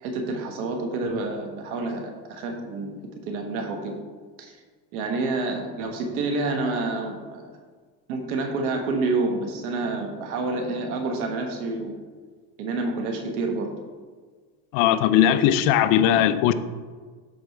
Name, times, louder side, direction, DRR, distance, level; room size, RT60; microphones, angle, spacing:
voice 1, 0.0-2.9 3.3-3.9 4.4-4.6 4.9-7.4 8.1-11.9 12.6-13.7 15.3-15.4, right 3 dB, 90° right, 1.5 m, -28 dB
voice 2, 14.7-16.5, left 11 dB, 55° left, 0.5 m, -19 dB
12.5 x 4.4 x 3.2 m
cardioid pair, 150°, 42 cm